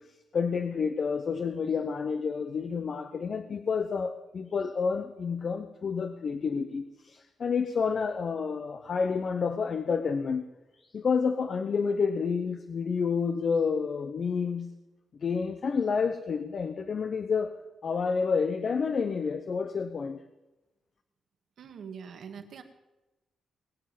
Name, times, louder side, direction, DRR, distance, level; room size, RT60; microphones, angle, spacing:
voice 1, 0.3-10.4 10.8-14.7 15.2-17.6 17.8-20.2, left 5 dB, 40° left, 9 dB, 0.9 m, -29 dB
voice 2, 21.6-22.6, right 6 dB, 60° right, 7 dB, 1.9 m, -43 dB
21.0 x 7.4 x 9.3 m, 1.0 s
wide cardioid pair, 160°, 0 cm